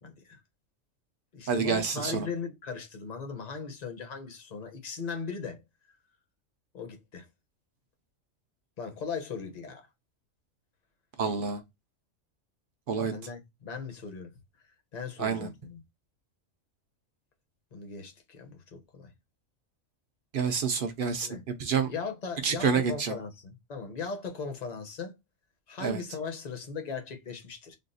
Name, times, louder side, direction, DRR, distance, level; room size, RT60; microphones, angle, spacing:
voice 1, 0.0-0.4 1.3-5.6 6.7-7.2 8.8-9.9 13.0-14.3 14.9-15.8 17.7-19.1 21.2-21.4 21.8-25.1 25.7-27.8, left 5 dB, 40° left, 0.8 m, -38 dB
voice 2, 1.5-2.3 11.2-11.6 12.9-13.1 15.2-15.5 20.3-21.3 21.6-21.9 22.4-23.1 25.8-26.0, right 6 dB, 60° right, 0.6 m, -28 dB
3.5 x 2.3 x 2.6 m
omnidirectional pair, 1.3 m